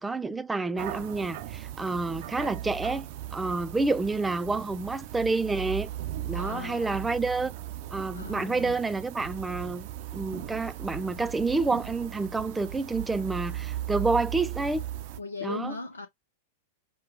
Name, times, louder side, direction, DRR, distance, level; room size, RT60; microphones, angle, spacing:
voice 1, 0.0-5.9 6.3-7.5 7.9-9.9 10.1-14.8 15.4-15.7, right 3 dB, 10° right, 0.5 m, -29 dB
sound 1, 0.8-15.2, right 13 dB, 55° right, 0.6 m, -38 dB
voice 2, 6.3-7.3 8.1-8.8 15.2-16.1, left 4 dB, 90° left, 0.7 m, -38 dB
5.5 x 2.3 x 3.6 m
hypercardioid pair, 100°, 0 cm